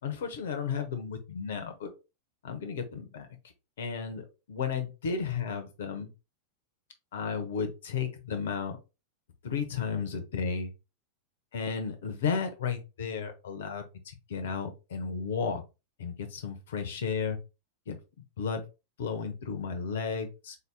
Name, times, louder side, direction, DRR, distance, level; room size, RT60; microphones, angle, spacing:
voice 1, 0.0-1.9 2.4-3.3 3.8-4.2 4.5-6.1 7.1-8.8 9.4-10.7 11.5-15.6 16.0-17.4 17.9-18.0 18.4-18.6 19.0-20.6, left 6 dB, 60° left, 7 dB, 0.9 m, -33 dB
3.9 x 2.8 x 3.3 m, 0.28 s
figure-of-eight pair, 90°, 0 cm